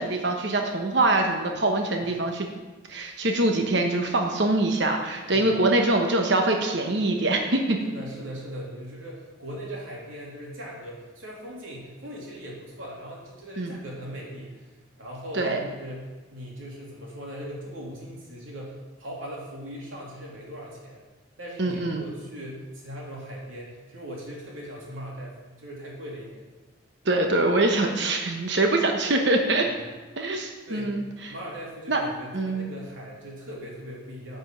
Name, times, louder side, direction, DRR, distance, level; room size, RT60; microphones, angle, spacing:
voice 1, 0.0-2.5 2.9-7.8 13.6-13.7 15.3-15.6 21.6-22.0 27.0-29.7 30.2-31.3 31.9-32.0 32.3-32.7, right 2 dB, 60° right, 3 dB, 1.1 m, -24 dB
voice 2, 7.8-14.7 15.0-21.0 21.4-26.5 29.6-29.9 30.7-31.0 31.3-34.4, equal, 90° right, -3 dB, 3.0 m, -39 dB
10.5 x 5.3 x 7.5 m, 1.3 s
head